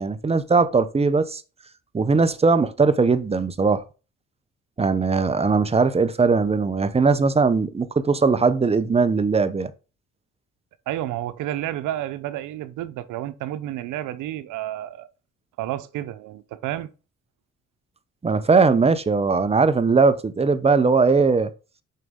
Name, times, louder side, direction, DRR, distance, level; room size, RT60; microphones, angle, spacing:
voice 1, 0.0-1.4 1.9-3.8 4.8-9.7 18.2-21.5, right 4 dB, 20° right, 0.7 m, -19 dB
voice 2, 10.9-15.1 15.6-16.9, right 13 dB, 90° right, 0.7 m, -30 dB
6.5 x 5.3 x 3.6 m
cardioid pair, 90°, 30 cm